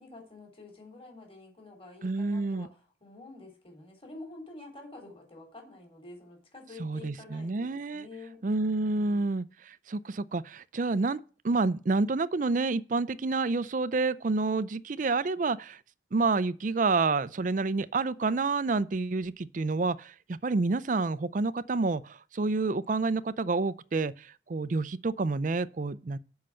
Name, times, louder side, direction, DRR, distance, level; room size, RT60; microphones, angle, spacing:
voice 1, 0.0-9.3, left 2 dB, 30° left, 3.3 m, -48 dB
voice 2, 2.0-2.7 6.8-8.1 8.4-11.2 11.4-15.8 16.1-26.2, right 3 dB, 45° right, 0.4 m, -29 dB
7.6 x 5.6 x 7.5 m
head